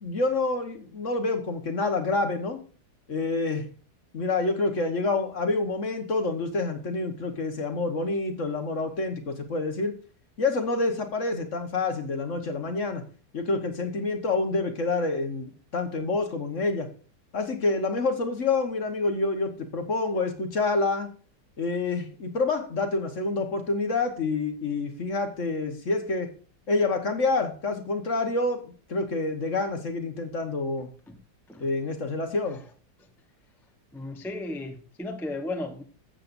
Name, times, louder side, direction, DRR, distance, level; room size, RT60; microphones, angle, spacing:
voice 1, 0.0-2.6 3.1-3.7 4.1-9.9 10.4-13.0 13.3-16.9 17.3-21.1 21.6-26.3 26.7-30.9 31.6-32.6, left 3 dB, 45° left, 1.5 m, -27 dB
voice 2, 33.9-35.8, left 2 dB, ahead, 0.7 m, -35 dB
14.0 x 7.7 x 2.6 m
omnidirectional pair, 2.0 m